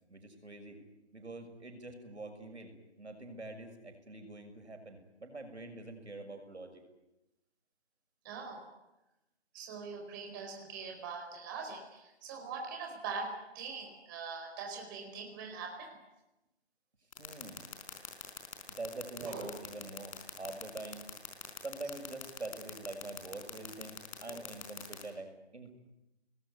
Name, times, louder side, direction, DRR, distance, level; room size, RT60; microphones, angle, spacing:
voice 1, 0.1-0.8 1.1-2.7 3.0-6.8 17.2-17.7 18.7-21.1 21.6-25.7, right 2 dB, 85° right, 6 dB, 6.7 m, -45 dB
voice 2, 8.2-8.7 9.5-15.9 19.2-19.5 24.3-24.4, right 5 dB, 20° right, 1 dB, 4.7 m, -42 dB
sound 1, 17.1-25.0, left 8 dB, 30° left, 4.3 m, -42 dB
29.5 x 20.5 x 9.5 m, 0.97 s
figure-of-eight pair, 160°, 33 cm